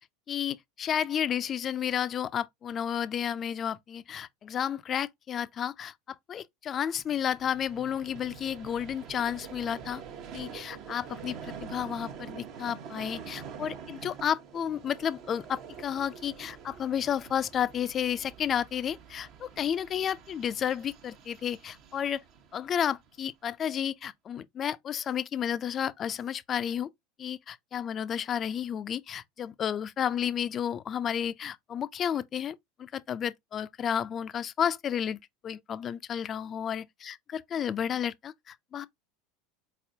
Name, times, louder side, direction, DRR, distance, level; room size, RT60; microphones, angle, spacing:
voice 1, 0.3-10.0 10.3-22.2 22.5-26.9 27.2-35.2 35.4-38.9, left 9 dB, 35° left, 0.4 m, -32 dB
Vehicle, 6.9-23.3, right 7 dB, 50° right, 1.0 m, -46 dB
4.2 x 4.1 x 2.7 m
figure-of-eight pair, 80°, 0 cm